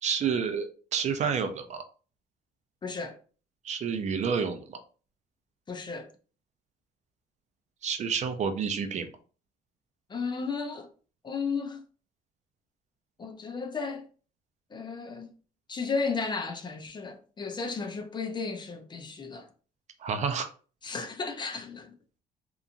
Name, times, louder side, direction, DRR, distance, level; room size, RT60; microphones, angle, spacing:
voice 1, 0.0-1.8 3.6-4.8 7.8-9.1 20.0-20.5, right 6 dB, 45° right, 0.4 m, -29 dB
voice 2, 2.8-3.2 5.7-6.1 10.1-10.9 11.2-11.8 13.2-14.1 14.7-15.3 15.7-19.5 20.8-22.0, left 4 dB, 25° left, 0.4 m, -34 dB
2.9 x 2.4 x 2.4 m
cardioid pair, 110°, 17 cm